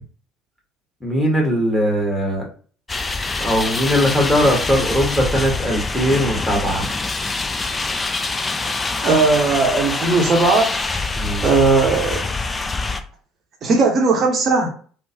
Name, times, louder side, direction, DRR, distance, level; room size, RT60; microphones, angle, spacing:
voice 1, 1.0-2.5 3.1-6.9 11.1-11.5, equal, 5° left, -2 dB, 1.3 m, -20 dB
sound 1, 2.9-13.0, left 3 dB, 25° left, 0.4 m, -25 dB
voice 2, 9.0-10.7 11.4-12.2 13.6-14.7, right 3 dB, 40° right, 0 dB, 0.7 m, -17 dB
2.9 x 2.0 x 2.7 m, 0.43 s
figure-of-eight pair, 55°, 0 cm